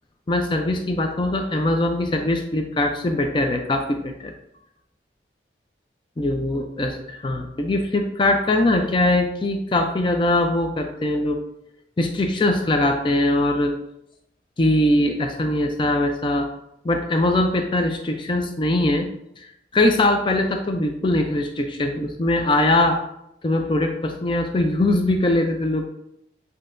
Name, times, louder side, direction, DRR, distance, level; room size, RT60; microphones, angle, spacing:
voice 1, 0.3-4.3 6.2-11.4 12.0-13.7 14.6-16.5 16.8-19.1 19.4-23.0 23.4-25.9, left 1 dB, 30° left, 5 dB, 0.4 m, -21 dB
7.5 x 2.8 x 2.5 m, 0.79 s
head